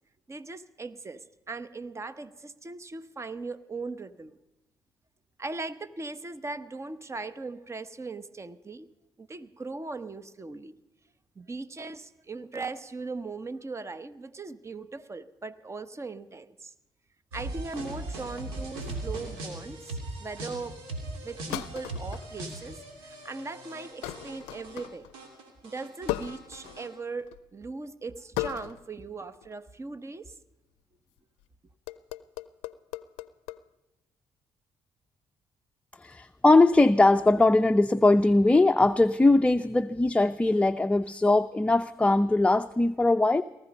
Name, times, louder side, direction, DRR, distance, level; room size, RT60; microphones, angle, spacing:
voice 1, 0.3-4.3 5.4-8.9 9.2-10.8 11.4-16.7 17.3-20.8 21.2-25.1 25.6-30.3, right 3 dB, 30° right, 14 dB, 1.1 m, -39 dB
sound 1, 17.3-24.9 25.1-26.9, right 2 dB, 85° right, 2.8 m, -39 dB
sound 2, 19.1-19.5 21.5-22.3 22.8-23.2 24.0-25.2 26.1-26.9 27.2-27.5 28.4-28.9 29.3-29.5 31.2-31.4 31.9-33.6, left 16 dB, 85° left, 0.5 m, -37 dB
voice 2, 36.0-43.4, left 2 dB, 15° left, 9 dB, 0.5 m, -21 dB
18.5 x 14.0 x 5.4 m, 0.99 s
hypercardioid pair, 50°, 9 cm